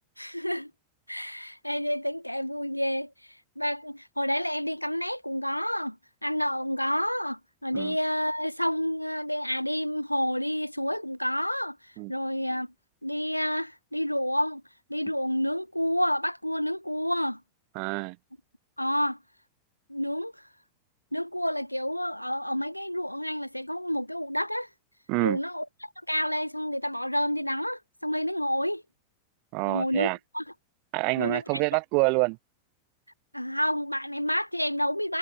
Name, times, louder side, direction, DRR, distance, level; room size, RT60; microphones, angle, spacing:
voice 1, 0.2-0.7 1.1-3.1 3.6-6.0 6.2-11.8 12.1-12.7 13.0-14.6 14.9-17.4 18.8-19.2 19.9-20.3 21.1-24.7 25.2-28.8 29.7-30.1 30.3-30.4 31.2-31.4 33.3-35.2, equal, 90° left, 1.0 m, -29 dB
voice 2, 17.8-18.2 25.1-25.4 29.5-30.2 30.9-32.4, right 33 dB, 45° right, 2.1 m, -26 dB
figure-of-eight pair, 90°, 0 cm